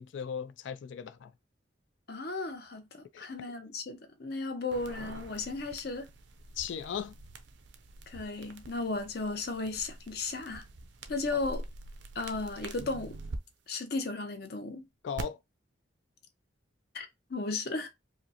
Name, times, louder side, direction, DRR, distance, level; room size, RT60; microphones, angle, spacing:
voice 1, 0.0-1.3 3.1-3.3 6.6-7.1 11.3-11.4 15.0-15.4, left 7 dB, 70° left, 0.3 m, -37 dB
voice 2, 2.1-6.1 8.1-10.6 11.1-11.6 12.1-13.2 13.7-14.8 16.9-17.9, left 3 dB, 55° left, 0.7 m, -35 dB
sound 1, 4.7-13.4 15.2-15.3, right 2 dB, 65° right, 0.5 m, -45 dB
4.8 x 2.1 x 2.8 m
head